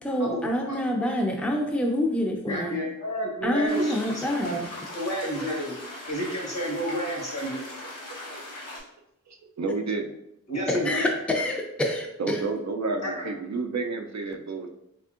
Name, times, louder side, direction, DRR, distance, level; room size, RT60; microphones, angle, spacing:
voice 1, 0.0-2.7 3.4-4.6 10.7-11.1 11.3-12.4, equal, 5° left, 1 dB, 0.5 m, -27 dB
voice 2, 2.4-4.6 4.9-5.8 6.1-7.6 10.5-11.1 13.0-13.3, equal, 60° left, -2 dB, 1.2 m, -30 dB
sound 1, 3.7-8.8, left 1 dB, 85° left, 1.2 m, -40 dB
voice 3, 5.2-5.6 8.2-8.5 9.3-10.2 12.2-14.7, right 3 dB, 60° right, 5 dB, 0.4 m, -31 dB
3.6 x 3.4 x 2.4 m, 0.82 s
wide cardioid pair, 50°, 31 cm